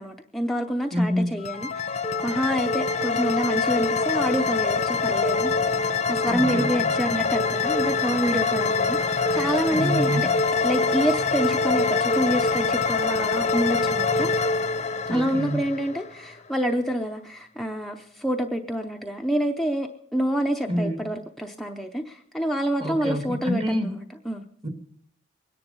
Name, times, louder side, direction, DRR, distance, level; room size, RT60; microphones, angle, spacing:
voice 1, 0.0-5.5 5.8-9.0 9.3-10.3 10.6-14.3 15.1-24.5, equal, ahead, 2 dB, 0.7 m, -27 dB
voice 2, 0.9-1.3 6.3-7.0 9.7-10.4 15.1-15.7 20.7-21.0 22.8-23.9 24.6-24.7, equal, 30° right, 6 dB, 1.8 m, -27 dB
sound 1, 1.4-16.2, left 4 dB, 40° left, 0.7 m, -24 dB
22.5 x 10.5 x 5.4 m, 0.68 s
head